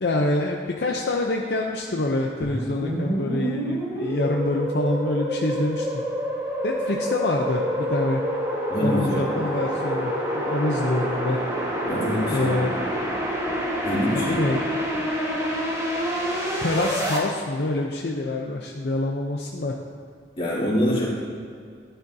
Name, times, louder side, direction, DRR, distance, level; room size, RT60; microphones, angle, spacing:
voice 1, 0.0-6.0 6.6-8.2 8.8-11.4 12.3-12.8 14.3-14.6 16.6-19.8, left 2 dB, 60° left, 0 dB, 0.6 m, -26 dB
sound 1, 2.4-17.2, equal, 15° right, 1.4 m, -27 dB
voice 2, 8.7-9.3 11.9-12.5 13.8-14.4 20.4-21.1, left 1 dB, 30° left, -6 dB, 2.8 m, -25 dB
13.0 x 10.0 x 2.7 m, 2.2 s
head